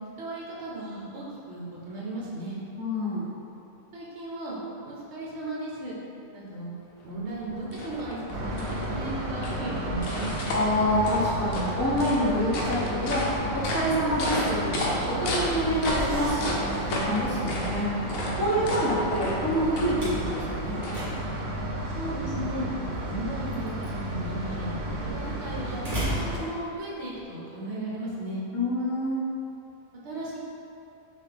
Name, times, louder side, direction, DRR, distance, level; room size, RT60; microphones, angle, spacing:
voice 1, 0.2-2.6 3.9-4.6 4.8-6.0 6.3-6.7 7.0-10.4 21.9-22.7 23.0-28.4 30.0-30.4, right 1 dB, 55° right, -5 dB, 1.2 m, -36 dB
voice 2, 2.8-3.3 10.5-17.9 18.4-20.8 28.5-29.2, equal, 15° left, -9 dB, 0.5 m, -27 dB
sound 1, 7.0-21.5, left 1 dB, 80° left, 1.1 m, -34 dB
sound 2, 8.3-26.4, right 1 dB, 85° right, 1.1 m, -32 dB
Slam, 16.9-27.2, right 1 dB, 35° right, 1.5 m, -40 dB
5.8 x 2.5 x 3.4 m, 2.7 s
omnidirectional pair, 1.4 m